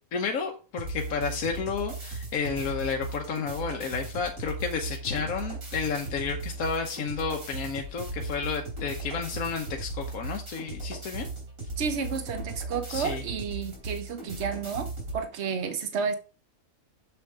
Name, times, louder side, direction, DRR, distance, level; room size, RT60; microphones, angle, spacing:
voice 1, 0.1-11.3 12.9-13.2, left 5 dB, 75° left, 1.4 m, -31 dB
sound 1, 0.8-15.2, right 2 dB, 75° right, 3.9 m, -37 dB
voice 2, 11.8-16.1, right 6 dB, 55° right, 1.2 m, -31 dB
7.1 x 7.0 x 3.7 m
omnidirectional pair, 1.5 m